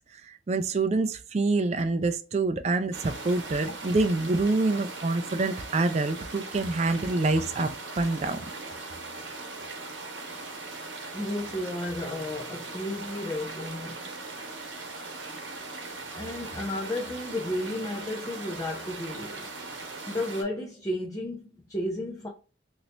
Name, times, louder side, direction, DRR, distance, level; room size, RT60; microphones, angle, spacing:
voice 1, 0.1-8.5, right 3 dB, 35° right, 0.3 m, -26 dB
sound 1, 2.9-20.4, right 3 dB, 80° right, 1.0 m, -39 dB
voice 2, 11.1-14.0 16.1-19.5 20.1-22.3, left 1 dB, 20° left, 0.5 m, -33 dB
2.9 x 2.7 x 3.2 m
head